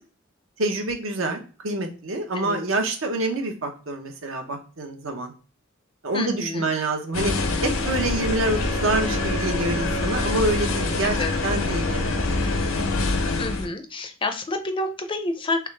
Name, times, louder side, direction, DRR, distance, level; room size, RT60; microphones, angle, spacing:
voice 1, 0.6-5.3 6.0-7.3 7.6-11.2 11.4-12.2, right 2 dB, 80° right, 3 dB, 0.9 m, -26 dB
voice 2, 6.1-6.7 11.0-11.3 13.4-15.7, left 2 dB, 25° left, 8 dB, 0.5 m, -29 dB
sound 1, 7.1-13.7, left 3 dB, 85° left, 0.7 m, -25 dB
Wind instrument woodwind instrument, 7.5-12.1, right 7 dB, 35° right, 0.8 m, -38 dB
3.5 x 3.5 x 3.2 m, 0.37 s
head